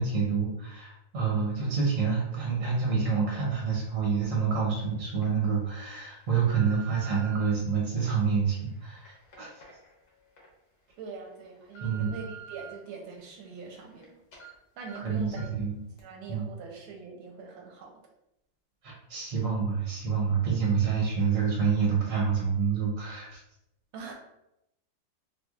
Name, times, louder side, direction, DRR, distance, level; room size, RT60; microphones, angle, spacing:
voice 1, 0.0-9.5 11.8-12.1 14.9-15.8 16.3-16.5 18.8-23.4, right 5 dB, 65° right, -3 dB, 0.8 m, -28 dB
sound 1, 4.2-4.3 4.9-5.3 5.9-7.5 8.2-10.5 10.9-11.0 11.4-12.7 13.2-14.1 14.3-14.5 14.9-15.0 15.4-15.6 16.0-16.1, right 6 dB, 60° left, 1.2 m, -48 dB
voice 2, 11.0-15.5 16.0-17.9 23.9-24.1, right 5 dB, 85° right, 1 dB, 1.4 m, -43 dB
4.2 x 2.1 x 2.3 m, 0.84 s
omnidirectional pair, 2.2 m